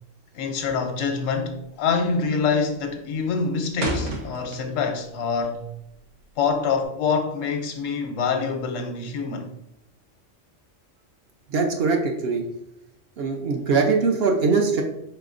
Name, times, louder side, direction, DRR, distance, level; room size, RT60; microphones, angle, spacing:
voice 1, 0.3-5.6 6.4-9.5, left 5 dB, 90° left, 1.0 m, -25 dB
sound 1, 2.9-5.1 5.4-6.8, right 1 dB, 80° right, 1.2 m, -32 dB
voice 2, 11.5-12.4 13.2-14.8, right 4 dB, 65° right, 0.7 m, -22 dB
4.8 x 3.4 x 2.5 m
omnidirectional pair, 1.3 m